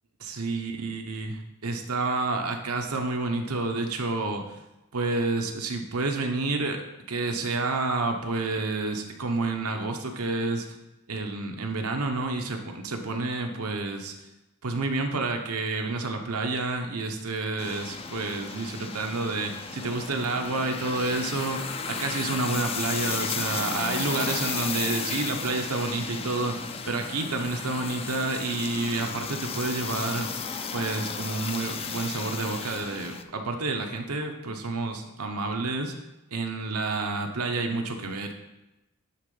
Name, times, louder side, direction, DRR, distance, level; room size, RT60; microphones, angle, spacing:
voice 1, 0.3-4.4 4.9-6.8 7.1-10.7 11.1-14.1 14.6-30.3 30.7-35.9 36.3-38.3, right 3 dB, 85° right, 4 dB, 1.0 m, -29 dB
sound 1, 17.6-33.2, left 5 dB, 25° left, 0.4 m, -34 dB
9.8 x 3.8 x 5.5 m, 0.96 s
head